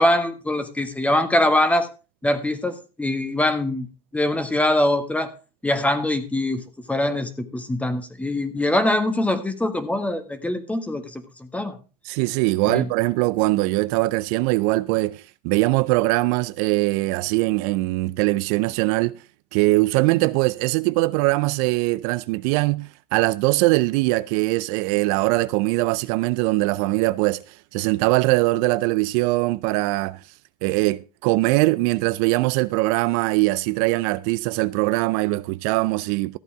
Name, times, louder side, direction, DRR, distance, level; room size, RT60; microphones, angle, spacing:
voice 1, 0.0-1.9 2.2-3.9 4.1-5.3 5.6-11.2 11.5-11.8 12.7-12.9, left 1 dB, 5° left, 1.6 m, -23 dB
voice 2, 12.0-19.2 19.5-30.2 30.6-36.4, right 21 dB, 65° right, 0.6 m, -21 dB
14.5 x 8.2 x 4.8 m
supercardioid pair, 120°, 21 cm